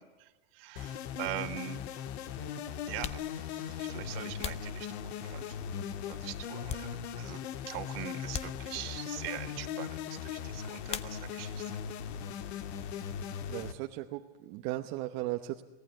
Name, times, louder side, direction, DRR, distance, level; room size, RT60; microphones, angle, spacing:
voice 1, 0.0-1.8 2.9-5.5 6.0-11.7, right 16 dB, 60° right, 9 dB, 1.9 m, -43 dB
sound 1, 0.8-13.7, left 8 dB, 70° left, 1.9 m, -39 dB
sound 2, 2.9-5.5 6.0-7.4 7.7-7.8 8.3-9.1 10.8-11.6 11.9-12.6 12.9-15.0, left 8 dB, 20° left, 0.7 m, -44 dB
voice 2, 13.5-15.6, right 16 dB, 45° right, 4 dB, 1.0 m, -37 dB
23.5 x 18.5 x 9.7 m, 1.1 s
supercardioid pair, 160°, 34 cm